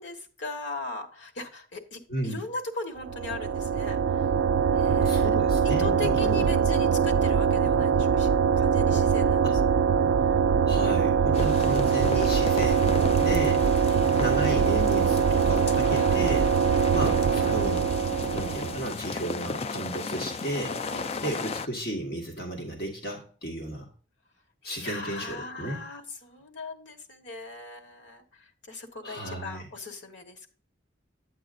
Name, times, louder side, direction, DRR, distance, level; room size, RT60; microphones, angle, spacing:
voice 1, 0.0-4.3 4.7-5.4 5.6-8.3 8.6-9.5 11.4-11.9 13.9-14.2 16.0-16.3 20.9-21.1 24.6-30.4, left 3 dB, 90° left, 6 dB, 1.4 m, -39 dB
voice 2, 2.1-2.4 5.0-6.5 9.4-9.6 10.7-13.7 14.2-16.5 16.9-17.9 18.3-20.8 21.2-23.9 24.6-25.8 29.0-29.6, right 1 dB, 55° left, 0 dB, 1.7 m, -33 dB
sound 1, 3.0-18.9, right 6 dB, 85° right, 0.3 m, -23 dB
sound 2, 11.3-21.7, left 4 dB, 35° left, 0.4 m, -35 dB
8.9 x 8.2 x 2.6 m, 0.42 s
head